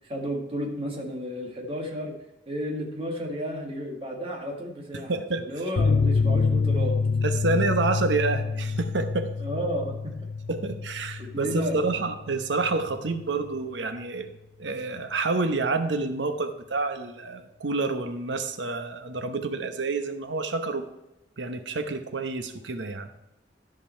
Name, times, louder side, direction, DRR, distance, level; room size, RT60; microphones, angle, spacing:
voice 1, 0.0-2.1 2.5-7.0 9.4-10.1 11.2-11.8, equal, 30° right, 1 dB, 1.8 m, -32 dB
voice 2, 4.9-5.4 7.2-9.3 10.5-14.3 14.6-20.9 21.4-23.1, right 3 dB, 80° right, 8 dB, 0.9 m, -28 dB
sound 1, 5.8-12.9 13.1-13.2 13.6-13.7, left 4 dB, 75° left, 0.5 m, -27 dB
13.0 x 5.4 x 4.4 m, 0.95 s
head